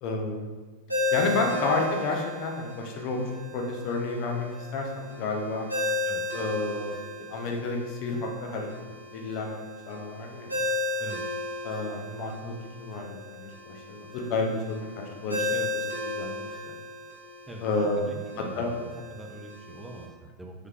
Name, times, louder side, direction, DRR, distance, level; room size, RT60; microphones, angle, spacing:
voice 1, 0.0-0.5 1.1-5.7 6.3-7.0 7.3-8.7 9.1-10.6 11.6-15.5 16.0-16.7 17.6-18.0 18.5-18.7, left 3 dB, 40° left, 2 dB, 0.5 m, -31 dB
Ringtone, 0.9-20.0, left 2 dB, 85° right, 0.7 m, -35 dB
voice 2, 18.0-20.5, right 2 dB, 5° right, 1 dB, 0.4 m, -43 dB
3.3 x 3.2 x 2.3 m, 1.4 s
figure-of-eight pair, 90°, 0 cm